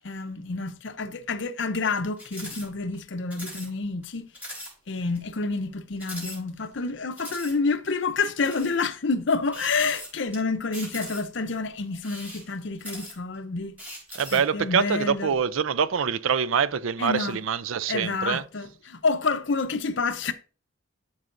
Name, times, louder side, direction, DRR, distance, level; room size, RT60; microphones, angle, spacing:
voice 1, 0.0-4.3 4.9-13.8 14.3-15.3 17.0-17.4 17.9-20.3, left 4 dB, 60° left, 0.7 m, -28 dB
sound 1, 2.2-2.7 2.9-3.0 3.3-3.7 4.0-4.1 4.3-4.7 5.2-5.3 6.0-6.8 7.2-7.5 8.2-8.8 9.5-10.4 10.7-11.4 11.9-13.4 13.8-14.5, equal, 10° right, 3.8 m, -40 dB
voice 2, 14.2-18.4, right 7 dB, 80° right, 0.5 m, -25 dB
12.0 x 5.5 x 2.6 m
head